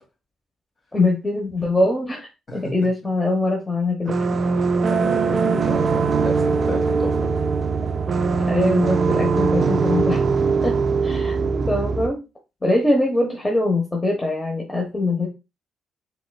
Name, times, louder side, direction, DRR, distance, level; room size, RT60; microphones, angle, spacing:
voice 1, 0.9-4.1 8.5-10.3 10.6-12.2 12.6-15.3, left 2 dB, 20° left, 0 dB, 1.0 m, -23 dB
voice 2, 2.5-2.9 4.0-4.1 4.9-7.1, left 1 dB, 40° left, 0 dB, 2.2 m, -32 dB
sound 1, 4.1-12.1, right 4 dB, 50° right, 0.4 m, -21 dB
4.2 x 3.5 x 2.2 m, 0.27 s
supercardioid pair, 55°, 0 cm